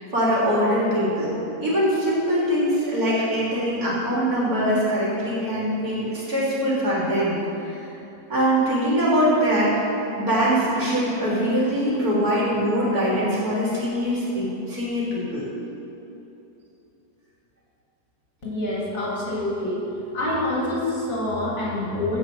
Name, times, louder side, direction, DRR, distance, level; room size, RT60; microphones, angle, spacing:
voice 1, 0.0-1.4 1.6-7.4 7.6-7.8 8.3-15.4, equal, 55° right, -7 dB, 4.0 m, -23 dB
voice 2, 18.4-19.8 20.1-22.2, left 1 dB, 80° left, -6 dB, 4.2 m, -26 dB
15.5 x 6.0 x 7.8 m, 2.9 s
omnidirectional pair, 1.9 m